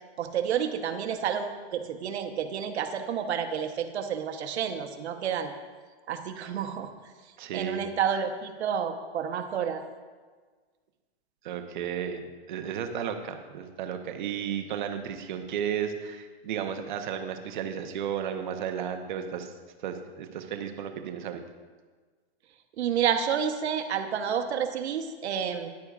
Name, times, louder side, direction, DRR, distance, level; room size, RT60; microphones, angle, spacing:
voice 1, 0.2-5.5 6.1-6.9 7.5-9.8 22.8-25.7, right 8 dB, 75° right, 6 dB, 1.0 m, -30 dB
voice 2, 7.4-7.8 11.4-12.2 12.5-19.5 19.8-21.4, right 8 dB, 45° right, 6 dB, 0.8 m, -33 dB
12.5 x 10.5 x 2.4 m, 1.5 s
supercardioid pair, 175°, 33 cm